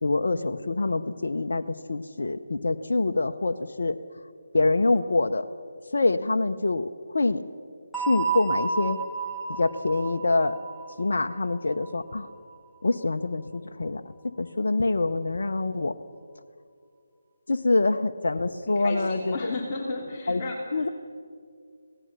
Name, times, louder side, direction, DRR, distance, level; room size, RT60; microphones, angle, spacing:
voice 1, 0.0-4.0 4.5-5.5 5.9-7.4 8.0-9.0 9.6-10.6 11.0-12.3 12.8-14.0 14.4-15.9 17.5-19.5 20.3-20.4 20.7-20.9, left 3 dB, 70° left, 6 dB, 0.9 m, -25 dB
sound 1, 7.9-12.6, right 5 dB, ahead, 2.7 m, -32 dB
voice 2, 18.6-20.9, left 2 dB, 30° left, -3 dB, 3.0 m, -33 dB
25.5 x 18.0 x 6.8 m, 2.2 s
figure-of-eight pair, 155°, 0 cm